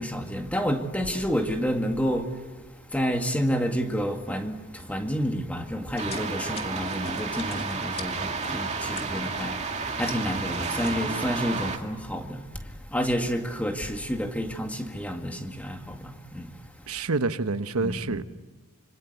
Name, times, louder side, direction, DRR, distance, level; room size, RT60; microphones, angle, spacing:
voice 1, 0.0-2.4 2.9-16.6 17.8-18.2, equal, 5° left, 2.1 m, -29 dB
sound 1, 6.0-9.4 9.8-10.6 10.9-11.3, left 3 dB, 25° left, 2.1 m, -41 dB
sound 2, 6.0-11.8, right 4 dB, 30° right, 2.4 m, -31 dB
voice 2, 16.9-18.2, right 3 dB, 80° right, 1.0 m, -27 dB
26.0 x 25.5 x 8.2 m
head